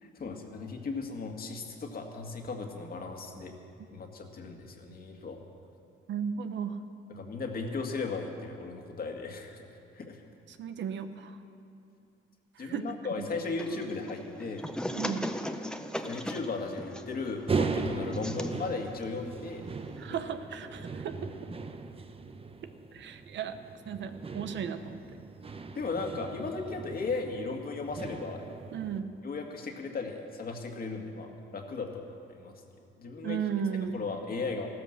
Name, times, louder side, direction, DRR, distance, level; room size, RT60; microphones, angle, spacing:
voice 1, 0.0-3.5 3.9-5.4 7.1-9.7 9.9-10.2 12.6-14.7 16.0-19.6 20.1-20.2 25.8-28.5 29.2-32.6 33.0-33.4 33.9-34.7, left 4 dB, 50° left, 2 dB, 2.1 m, -36 dB
voice 2, 6.1-6.8 10.5-11.4 12.6-12.8 14.9-15.3 20.0-21.1 22.9-23.6 23.9-25.0 28.7-29.1 33.2-34.0, right 7 dB, 65° right, 9 dB, 0.9 m, -35 dB
sound 1, 13.6-20.2, equal, 5° left, 0.8 m, -39 dB
sound 2, 17.5-29.0, right 4 dB, 30° right, 0.9 m, -38 dB
14.5 x 12.5 x 6.7 m, 2.5 s
cardioid pair, 90°, 20 cm